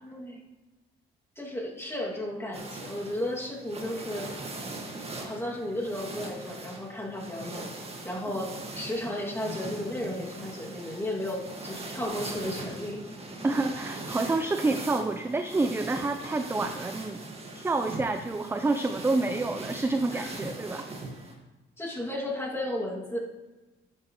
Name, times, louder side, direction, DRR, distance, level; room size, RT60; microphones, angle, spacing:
voice 1, 0.0-0.4 1.4-4.3 5.2-7.7 8.0-13.0 20.1-20.3 21.8-23.2, left 1 dB, 10° left, -3 dB, 2.4 m, -34 dB
sound 1, 2.5-21.3, right 2 dB, 30° right, 1.8 m, -40 dB
voice 2, 13.4-17.2 17.5-20.9, right 3 dB, 10° right, 8 dB, 0.5 m, -28 dB
12.0 x 8.2 x 3.1 m, 1.2 s
cardioid pair, 90°, 20 cm